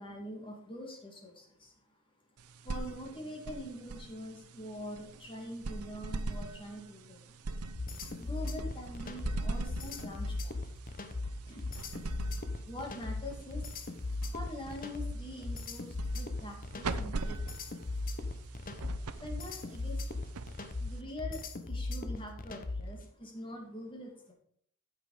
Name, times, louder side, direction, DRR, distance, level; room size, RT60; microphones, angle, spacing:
voice 1, 0.0-1.7 2.6-7.4 8.1-10.6 11.5-11.6 12.7-13.7 14.3-17.6 19.2-20.0 20.8-24.3, left 1 dB, 25° left, 0 dB, 2.4 m, -44 dB
sound 1, 2.4-21.3, right 3 dB, 85° right, 0.7 m, -43 dB
sound 2, 7.8-23.0, left 2 dB, 40° left, 1.0 m, -38 dB
9.1 x 7.4 x 5.0 m, 0.63 s
head